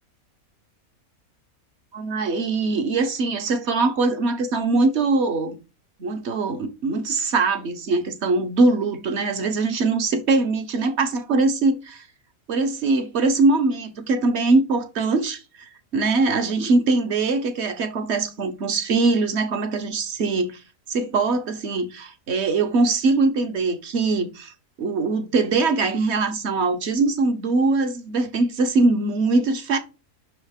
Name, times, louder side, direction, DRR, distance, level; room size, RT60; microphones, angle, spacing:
voice 1, 1.9-5.6 6.0-12.0 12.5-15.4 15.9-20.6 20.9-24.5 24.8-29.8, right 3 dB, 50° right, 1.1 m, -22 dB
6.1 x 4.8 x 3.6 m
omnidirectional pair, 1.6 m